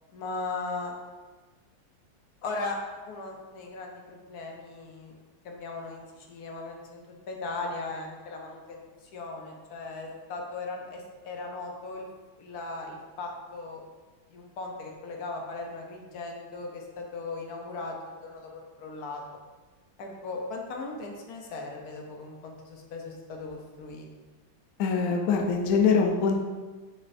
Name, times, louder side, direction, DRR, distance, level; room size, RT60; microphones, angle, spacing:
voice 1, 0.1-0.9 2.4-5.2 5.4-8.9 9.1-12.1 12.4-13.8 14.3-18.5 18.8-19.2 20.0-24.1, left 3 dB, 60° left, 1 dB, 1.3 m, -38 dB
voice 2, 24.8-26.4, left 5 dB, 75° left, 2 dB, 0.7 m, -23 dB
6.6 x 6.5 x 2.6 m, 1.3 s
omnidirectional pair, 2.2 m